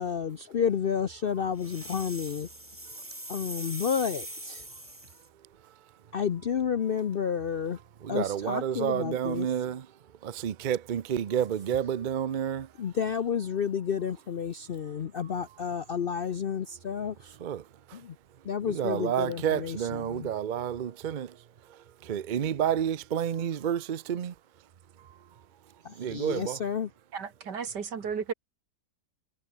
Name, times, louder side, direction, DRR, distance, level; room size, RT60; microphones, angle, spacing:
voice 1, 0.0-2.5 3.3-4.6 6.1-7.8 8.1-9.5 12.8-17.3 17.9-18.1 18.4-20.3 25.8-26.9, left 7 dB, 60° left, 0.5 m, -31 dB
sound 1, 1.6-5.3, right 1 dB, 10° right, 2.0 m, -41 dB
voice 2, 8.0-9.9 10.2-12.7 17.4-18.0 18.6-21.4 21.7-24.3 25.0-25.1 25.9-26.6, right 9 dB, 55° right, 0.5 m, -30 dB
voice 3, 27.1-28.3, right 6 dB, 85° right, 2.6 m, -34 dB
omnidirectional pair, 1.8 m